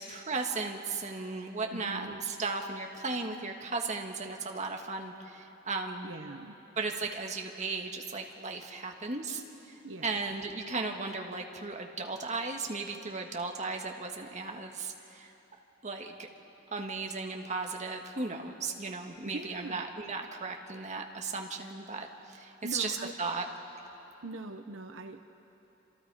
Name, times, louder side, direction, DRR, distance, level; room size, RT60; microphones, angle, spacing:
voice 1, 0.0-6.1 6.8-15.3 15.8-16.3 16.7-23.4, right 3 dB, 35° right, 2 dB, 1.7 m, -36 dB
voice 2, 1.7-2.2 6.0-6.6 9.8-10.1 19.3-19.8 22.6-23.1 24.2-25.2, right 2 dB, 80° right, 6 dB, 0.9 m, -42 dB
29.5 x 27.0 x 4.8 m, 3.0 s
head